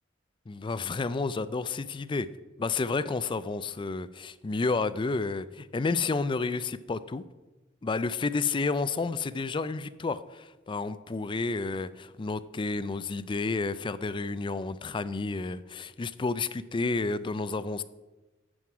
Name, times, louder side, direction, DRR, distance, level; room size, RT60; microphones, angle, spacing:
voice 1, 0.5-2.3 2.6-7.2 7.8-17.8, left 3 dB, 25° left, 14 dB, 0.4 m, -31 dB
11.5 x 7.6 x 4.8 m, 1.2 s
head